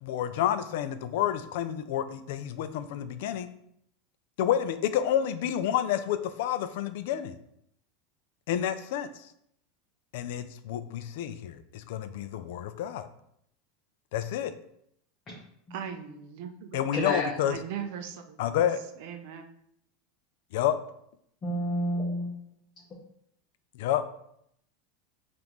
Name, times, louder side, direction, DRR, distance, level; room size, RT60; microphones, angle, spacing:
voice 1, 0.0-3.5 4.4-7.3 8.5-9.1 10.1-13.1 14.1-14.5 16.7-17.6 18.4-18.8 20.5-20.8 23.7-24.0, left 10 dB, 70° left, 11 dB, 0.3 m, -29 dB
voice 2, 15.7-16.9 17.4-18.6 19.0-19.5, right 8 dB, 60° right, 6 dB, 0.4 m, -39 dB
voice 3, 16.9-17.3 21.4-22.3, equal, 25° left, -5 dB, 0.7 m, -29 dB
5.2 x 2.5 x 3.0 m, 0.72 s
supercardioid pair, 160°, 0 cm